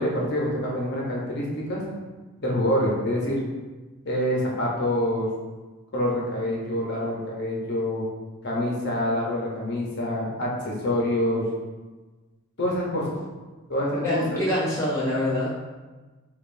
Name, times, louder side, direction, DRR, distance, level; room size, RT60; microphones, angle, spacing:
voice 1, 0.0-1.8 2.4-3.4 4.0-5.3 5.9-8.1 8.4-11.4 12.6-13.2 13.7-14.4, left 1 dB, 50° left, -3 dB, 0.9 m, -26 dB
voice 2, 13.9-15.5, left 1 dB, 15° left, -8 dB, 0.6 m, -25 dB
5.2 x 2.5 x 2.6 m, 1.2 s
head